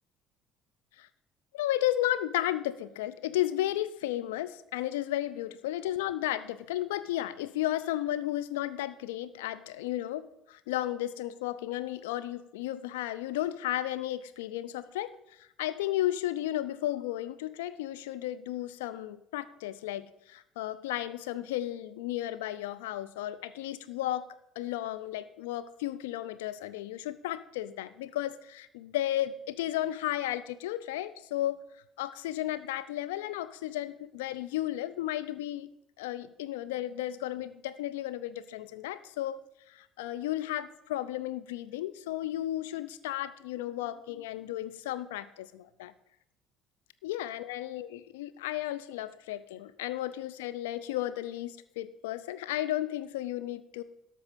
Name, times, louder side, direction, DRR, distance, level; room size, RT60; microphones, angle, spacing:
voice 1, 1.5-10.2 10.5-15.1 15.6-24.2 24.6-31.6 32.0-35.7 36.0-39.4 39.7-45.9 47.0-53.8, left 13 dB, 70° left, 12 dB, 0.5 m, -34 dB
13.0 x 5.6 x 5.2 m, 0.81 s
figure-of-eight pair, 55°, 0 cm